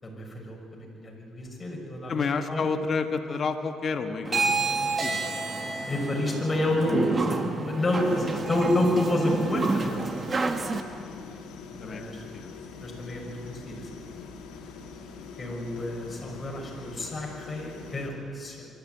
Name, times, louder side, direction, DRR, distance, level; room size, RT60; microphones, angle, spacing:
voice 1, 0.0-2.7 5.9-10.0 11.7-12.2 12.8-14.0 15.4-18.6, left 1 dB, 25° left, -1 dB, 6.3 m, -29 dB
voice 2, 2.1-5.3 11.1-11.4 11.8-12.6 15.4-15.8, left 4 dB, 45° left, 6 dB, 1.7 m, -31 dB
sound 1, 4.2-10.8, right 3 dB, 30° right, 1.5 m, -29 dB
sound 2, 7.9-18.1, left 5 dB, 90° left, 2.7 m, -43 dB
24.5 x 13.5 x 9.3 m, 2.5 s
cardioid pair, 95°, 0 cm